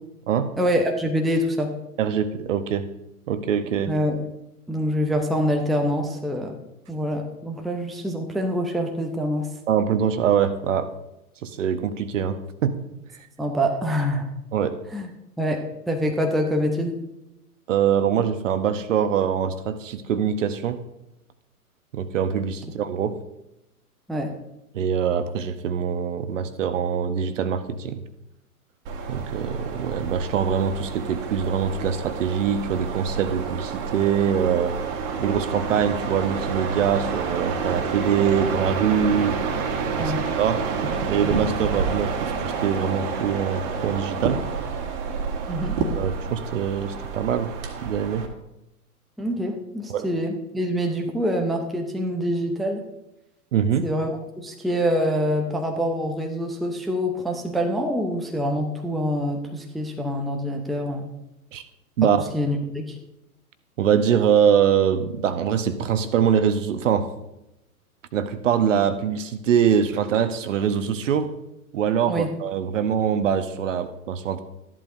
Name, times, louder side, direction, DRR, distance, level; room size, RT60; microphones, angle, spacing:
voice 1, 0.6-1.7 3.9-4.2 4.7-6.5 6.9-9.5 13.4-14.3 14.9-15.1 15.4-17.0 24.1-24.4 40.0-40.2 45.5-45.8 49.2-52.8 53.8-54.1 54.4-61.1 62.0-62.1 62.3-63.0 72.1-72.3, equal, ahead, 2 dB, 0.7 m, -25 dB
voice 2, 2.0-2.9 3.3-3.9 9.7-10.9 11.4-12.8 14.5-14.8 17.7-20.8 21.9-23.2 24.7-28.0 29.1-34.8 35.2-39.4 40.0-40.6 41.1-44.4 46.0-47.5 47.8-48.3 49.9-50.0 53.5-53.9 61.5-61.7 62.0-62.3 63.8-67.1 68.1-71.3 71.7-74.4, right 8 dB, 55° right, 11 dB, 1.0 m, -23 dB
sound 1, 28.9-48.3, right 5 dB, 40° right, 1.8 m, -29 dB
13.5 x 11.0 x 2.6 m, 0.91 s
figure-of-eight pair, 105°, 45 cm